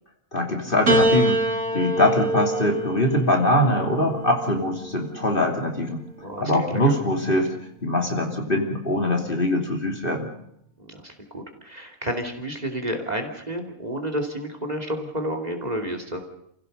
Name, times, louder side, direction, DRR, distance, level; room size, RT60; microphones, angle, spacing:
voice 1, 0.3-6.0 6.4-7.5 7.8-10.3, left 1 dB, 40° left, 2 dB, 3.2 m, -22 dB
Piano, 0.9-5.4 6.4-7.1, right 2 dB, 85° right, 3.0 m, -26 dB
voice 2, 6.2-7.0 10.8-16.2, equal, 30° right, 5 dB, 2.9 m, -31 dB
29.5 x 16.5 x 6.7 m, 0.75 s
omnidirectional pair, 1.4 m